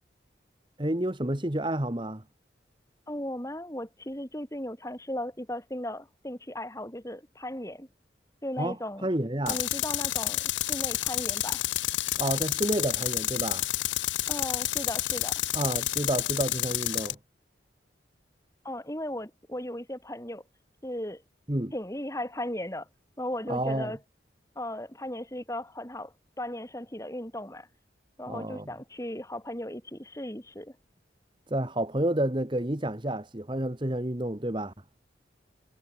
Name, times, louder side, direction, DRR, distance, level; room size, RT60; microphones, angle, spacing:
voice 1, 0.8-2.2 8.6-9.6 12.2-13.7 15.5-17.2 21.5-21.7 23.5-23.9 28.2-28.7 31.5-34.7, right 1 dB, 25° right, 1.4 m, -30 dB
voice 2, 3.1-7.9 8.4-9.1 9.5-10.4 10.7-11.7 14.3-15.3 18.6-20.4 20.8-21.2 21.7-22.9 23.2-24.0 24.6-27.7 28.2-30.7, left 1 dB, 15° left, 3.9 m, -36 dB
Tools, 9.5-17.1, left 15 dB, 85° left, 0.7 m, -29 dB
head